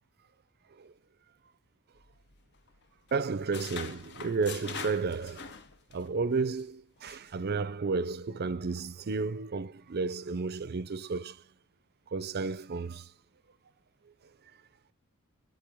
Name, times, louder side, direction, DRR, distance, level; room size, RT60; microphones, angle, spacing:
sound 1, 2.0-2.8 3.1-6.1 6.4-6.6 7.1-7.3, left 6 dB, 55° left, 0.8 m, -44 dB
voice 1, 3.1-5.5 5.9-11.4 12.1-13.1, right 4 dB, 45° right, 0.5 m, -32 dB
12.0 x 4.8 x 3.6 m
head